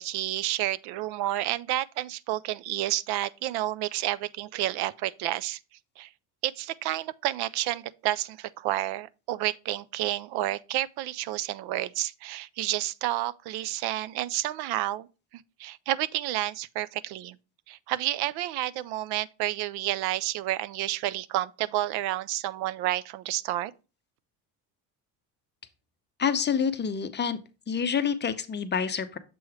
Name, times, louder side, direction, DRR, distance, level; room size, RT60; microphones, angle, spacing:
voice 1, 0.0-5.6 6.0-6.1 6.4-15.1 15.6-17.4 17.7-23.7, right 14 dB, 65° right, 0.5 m, -30 dB
voice 2, 26.2-27.4 27.7-29.2, left 7 dB, 25° left, 0.6 m, -27 dB
6.9 x 3.1 x 4.7 m
supercardioid pair, 95°, 42 cm